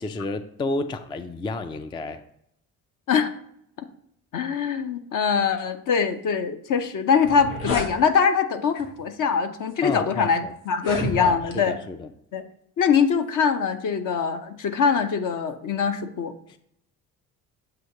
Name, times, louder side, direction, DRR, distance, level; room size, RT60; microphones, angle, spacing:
voice 1, 0.0-2.2 9.8-10.5 11.2-12.1 16.5-16.6, left 2 dB, 15° left, 10 dB, 0.3 m, -31 dB
voice 2, 4.3-11.8 12.3-12.4 12.8-16.3, left 6 dB, 50° left, 8 dB, 0.8 m, -23 dB
sound 1, 6.8-6.9 7.2-7.9 8.8-9.0 9.7-9.8 10.7-11.6, left 2 dB, 85° left, 1.3 m, -30 dB
7.6 x 2.9 x 5.3 m, 0.72 s
hypercardioid pair, 60°, 40 cm